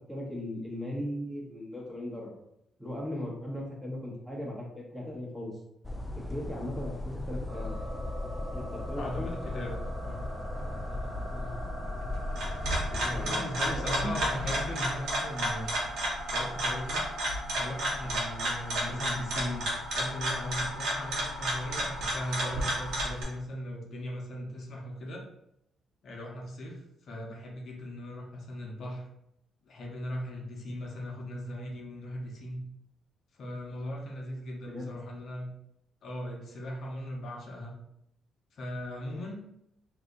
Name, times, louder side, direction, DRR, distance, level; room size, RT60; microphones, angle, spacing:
voice 1, 0.1-2.3 2.8-5.6 6.3-7.8 8.5-9.3 11.3-11.5 12.9-14.1 18.9-19.0 34.7-35.0, left 1 dB, 5° right, -3 dB, 1.1 m, -38 dB
sound 1, 5.8-13.3, left 1 dB, 15° left, 0.3 m, -37 dB
sound 2, 7.5-23.1, equal, 50° right, 0.9 m, -42 dB
voice 2, 8.9-9.8 10.0-10.3 13.0-15.8 16.3-17.0 17.5-19.7 19.9-25.2 26.0-29.1 29.7-32.6 33.4-35.5 36.0-37.8 38.5-39.4, left 1 dB, 60° left, -1 dB, 0.7 m, -38 dB
sound 3, 12.1-23.2, right 1 dB, 80° right, 1.1 m, -32 dB
2.8 x 2.4 x 3.7 m, 0.79 s
cardioid pair, 90°, 0 cm